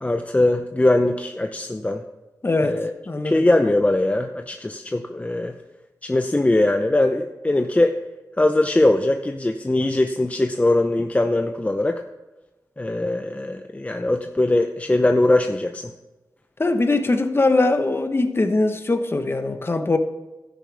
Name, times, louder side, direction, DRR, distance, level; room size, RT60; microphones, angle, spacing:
voice 1, 0.0-2.0 2.6-2.9 3.2-5.6 6.0-7.9 8.4-12.0 12.8-15.9, left 2 dB, 20° left, 0.7 m, -21 dB
voice 2, 2.4-2.8 3.1-3.4 16.6-20.0, left 2 dB, 35° left, 1.2 m, -21 dB
12.5 x 10.5 x 3.5 m
wide cardioid pair, 70°, 7 cm